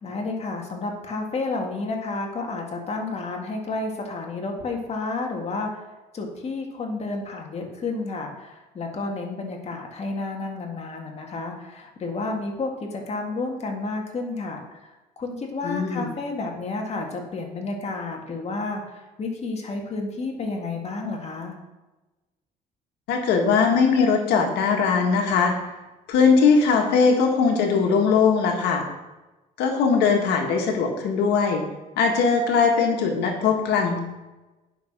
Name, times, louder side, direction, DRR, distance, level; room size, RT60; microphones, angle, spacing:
voice 1, 0.0-5.8 6.1-21.6, left 3 dB, 40° left, 1 dB, 2.0 m, -31 dB
voice 2, 15.6-16.1 23.1-25.5 26.1-28.8 29.6-31.6 32.0-34.0, left 5 dB, 80° left, 2 dB, 1.8 m, -20 dB
9.5 x 6.0 x 6.1 m, 1.1 s
cardioid pair, 110°, 17 cm